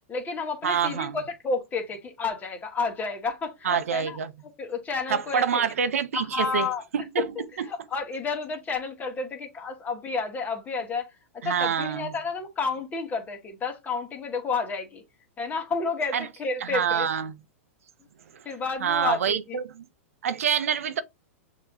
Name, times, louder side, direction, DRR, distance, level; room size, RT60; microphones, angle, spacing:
voice 1, 0.1-4.2 4.6-5.7 6.1-6.8 7.7-15.0 15.4-17.1 18.4-19.6, left 4 dB, 20° left, 1.6 m, -31 dB
voice 2, 0.6-1.2 3.6-4.3 5.1-6.7 6.9-7.3 11.4-12.1 16.1-16.3 16.6-17.4 18.3-18.4 18.8-19.9 20.2-21.0, right 8 dB, 80° right, 0.6 m, -26 dB
6.5 x 3.0 x 2.6 m
hypercardioid pair, 120°, 8 cm